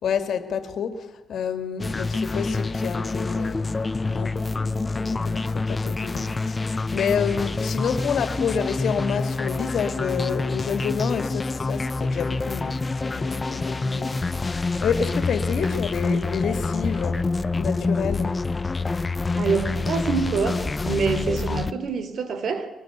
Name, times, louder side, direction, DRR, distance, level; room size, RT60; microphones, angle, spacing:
voice 1, 0.0-3.8 4.1-18.4, left 7 dB, 75° left, 2.4 m, -29 dB
sound 1, 1.8-21.7, left 3 dB, 30° left, 0.7 m, -27 dB
voice 2, 19.4-22.7, right 5 dB, 70° right, 3.2 m, -26 dB
23.0 x 20.0 x 8.3 m
cardioid pair, 90°, 0 cm